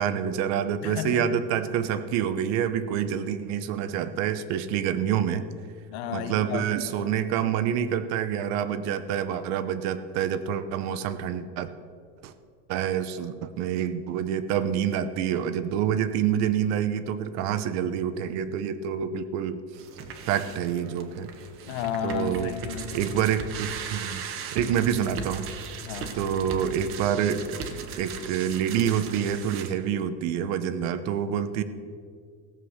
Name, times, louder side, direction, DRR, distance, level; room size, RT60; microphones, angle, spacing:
voice 1, 0.0-5.4 6.1-11.7 12.2-12.3 12.7-19.6 20.3-21.3 22.0-22.5 22.9-24.2 24.5-25.5 26.1-31.6, right 9 dB, 55° right, 12 dB, 0.9 m, -27 dB
voice 2, 0.8-1.4 5.9-7.1 21.7-23.1 25.8-26.2, left 9 dB, 90° left, 10 dB, 1.2 m, -33 dB
sound 1, 19.7-29.7, right 5 dB, 40° right, 1.2 m, -38 dB
16.0 x 7.6 x 6.5 m, 2.1 s
cardioid pair, 170°, 32 cm